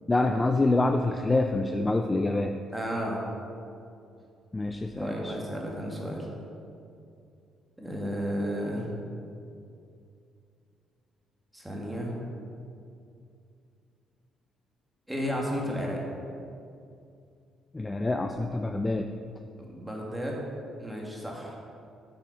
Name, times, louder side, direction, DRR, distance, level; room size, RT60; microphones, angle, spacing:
voice 1, 0.1-2.5 4.5-5.3 17.7-19.1, left 2 dB, 20° left, 5 dB, 0.4 m, -26 dB
voice 2, 2.7-3.2 5.0-6.3 7.8-8.8 11.5-12.1 15.1-16.0 19.6-20.4 20.8-21.6, equal, 5° right, -2 dB, 2.0 m, -33 dB
8.6 x 6.1 x 5.6 m, 2.5 s
cardioid pair, 95°, 0 cm